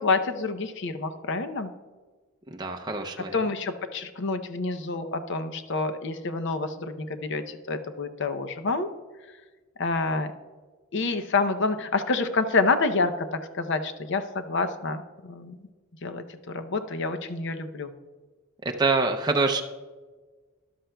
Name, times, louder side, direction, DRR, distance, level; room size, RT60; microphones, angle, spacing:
voice 1, 0.0-1.7 3.3-8.9 9.8-10.3 10.9-15.6 16.0-17.9, left 3 dB, 55° left, 9 dB, 0.6 m, -28 dB
voice 2, 2.5-3.4 18.6-19.6, right 3 dB, 20° right, 3 dB, 0.5 m, -25 dB
13.5 x 11.5 x 2.2 m, 1.3 s
head